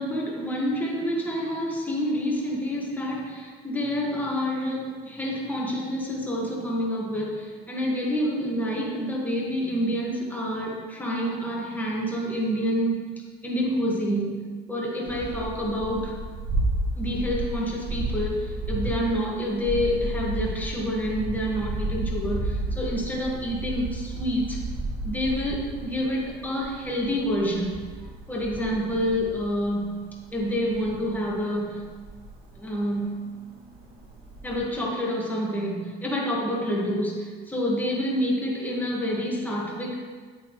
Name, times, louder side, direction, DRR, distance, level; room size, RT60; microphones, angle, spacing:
voice 1, 0.0-13.1 13.4-14.4 14.7-16.2 17.0-24.6 25.0-27.8 28.3-30.0 30.3-31.9 32.6-33.2 34.4-40.0, equal, 10° left, -3 dB, 1.8 m, -28 dB
sound 1, 15.1-32.8 33.2-33.3 33.6-34.6, right 2 dB, 70° right, 2.4 m, -32 dB
8.5 x 8.1 x 3.2 m, 1.5 s
cardioid pair, 110°, 17 cm